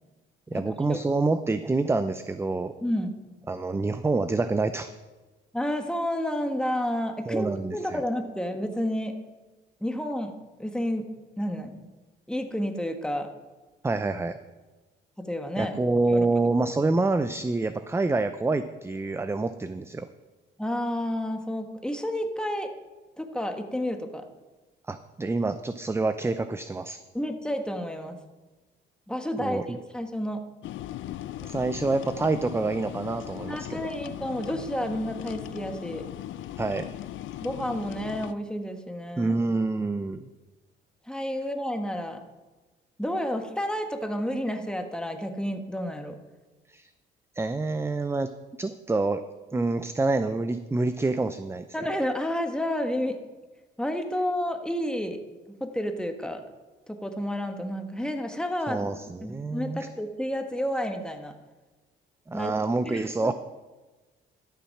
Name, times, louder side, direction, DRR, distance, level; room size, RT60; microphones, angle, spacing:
voice 1, 0.5-2.7 3.5-4.9 7.3-8.0 13.8-14.4 15.6-20.1 24.9-27.0 29.4-29.8 31.4-33.9 36.6-36.9 39.2-40.3 46.7-46.9 47.3-48.3 48.6-49.2 49.5-51.7 58.7-59.9 62.3-63.3, right 3 dB, 15° right, 11 dB, 0.5 m, -27 dB
voice 2, 2.8-3.1 5.5-7.5 7.7-9.1 9.8-10.3 10.6-11.1 11.4-11.8 12.3-13.3 15.2-15.8 16.1-16.3 20.6-22.7 23.2-24.2 27.1-28.2 29.1-30.4 33.5-36.0 37.4-39.3 41.1-42.2 43.0-46.2 51.7-53.2 53.8-55.2 55.5-56.4 56.9-58.9 59.2-61.3 62.3-62.5 62.8-63.3, equal, 5° left, 5 dB, 1.4 m, -30 dB
sound 1, 30.6-38.3, left 13 dB, 75° left, 0.5 m, -38 dB
12.5 x 7.1 x 5.9 m, 1.2 s
cardioid pair, 90°, 20 cm